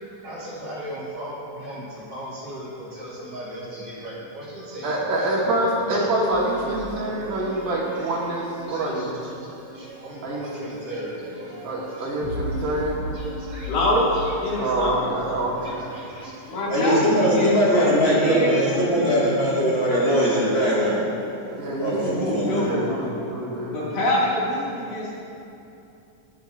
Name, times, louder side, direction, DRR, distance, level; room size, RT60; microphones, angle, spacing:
voice 1, 0.2-5.4 5.9-6.1 6.7-6.8 7.3-8.2 8.6-12.1 12.6-12.7 13.1-14.8 15.1-15.3 15.6-16.6, equal, 50° right, -7 dB, 2.6 m, -38 dB
voice 2, 4.8-9.1 10.2-10.4 11.6-13.0 14.6-15.9 21.5-23.9, right 1 dB, 75° right, -4 dB, 3.2 m, -26 dB
sound 1, 6.3-22.1, equal, 35° right, 1.0 m, -39 dB
voice 3, 13.7-14.1 14.4-15.1 16.5-19.4 22.1-23.1 23.7-25.2, left 1 dB, 65° left, -7 dB, 3.9 m, -26 dB
voice 4, 16.7-21.0 21.8-22.7, equal, 40° left, -8 dB, 2.6 m, -20 dB
22.0 x 8.3 x 2.6 m, 2.8 s
omnidirectional pair, 3.9 m